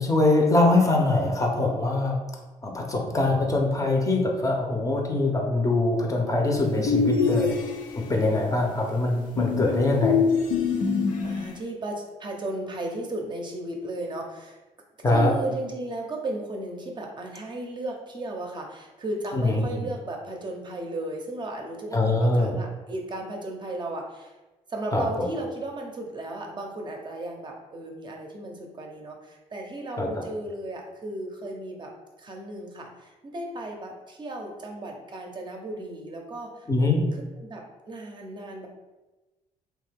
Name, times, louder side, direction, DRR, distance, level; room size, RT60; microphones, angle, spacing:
voice 1, 0.0-2.2 2.6-7.6 8.0-10.1 15.0-15.3 19.3-19.8 21.9-22.5 24.9-25.0 30.0-30.1 36.7-37.0, left 2 dB, 25° left, 0 dB, 0.6 m, -23 dB
voice 2, 6.7-7.0 9.6-9.8 11.2-14.6 15.1-24.3 24.7-31.9 32.2-36.7 37.1-38.7, right 1 dB, 35° right, 1 dB, 0.5 m, -35 dB
sound 1, 6.9-8.1 9.4-11.6, left 6 dB, 80° left, 0.5 m, -25 dB
2.7 x 2.3 x 3.3 m, 1.1 s
cardioid pair, 90°, 14 cm